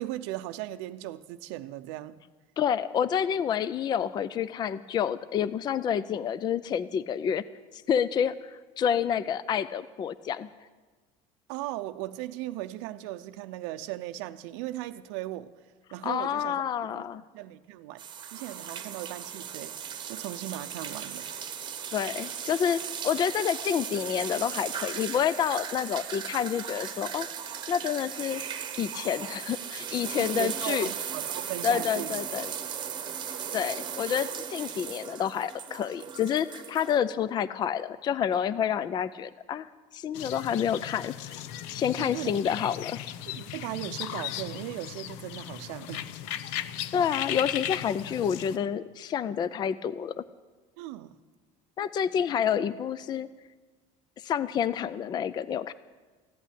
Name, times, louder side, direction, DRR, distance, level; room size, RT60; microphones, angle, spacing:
voice 1, 0.0-2.2 11.5-15.5 15.9-16.6 16.9-17.0 17.3-18.0 18.3-19.8 20.1-21.3 30.2-32.2 42.0-42.4 43.3-46.0 50.8-51.2, right 15 dB, 90° right, 9 dB, 0.6 m, -37 dB
voice 2, 2.6-7.4 7.7-10.5 16.0-17.2 21.9-27.3 27.7-28.4 28.8-30.9 31.6-32.5 33.5-41.1 41.7-43.0 46.9-50.2 51.8-53.3 54.2-55.7, left 8 dB, 30° left, 16 dB, 0.4 m, -28 dB
sound 1, 18.0-37.0, right 8 dB, 30° right, 1.1 m, -37 dB
sound 2, 40.1-48.6, left 11 dB, 85° left, 0.7 m, -37 dB
15.0 x 8.3 x 10.0 m, 1.4 s
cardioid pair, 140°, 15 cm